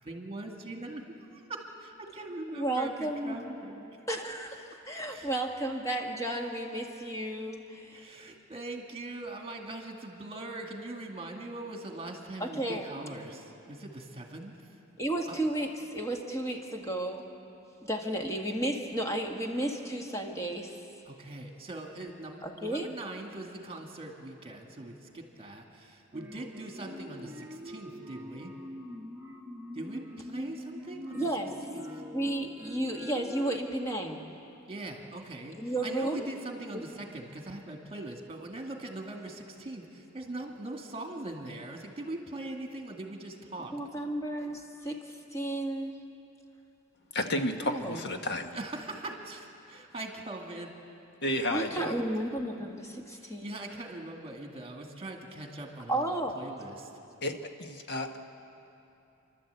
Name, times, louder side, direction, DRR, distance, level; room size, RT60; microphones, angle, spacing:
voice 1, 0.0-1.0 1.3-3.9 5.1-5.3 7.9-14.8 15.3-15.4 21.0-28.5 29.7-31.3 31.7-32.0 34.7-43.8 48.5-50.7 53.1-56.9, right 2 dB, 30° right, 2 dB, 2.1 m, -41 dB
voice 2, 2.5-3.4 4.1-8.1 12.4-12.8 15.0-17.2 17.8-20.8 22.4-22.9 31.1-31.5 32.1-34.3 35.6-36.3 36.7-36.8 43.7-46.0 47.6-48.0 51.5-53.5 55.9-56.4, right 1 dB, 15° left, 2 dB, 1.8 m, -33 dB
sound 1, 26.1-33.7, left 1 dB, 10° right, 1.2 m, -44 dB
voice 3, 47.1-48.5 51.2-52.0 57.2-58.2, left 1 dB, 55° left, 5 dB, 1.3 m, -32 dB
29.5 x 12.0 x 8.3 m, 2.8 s
head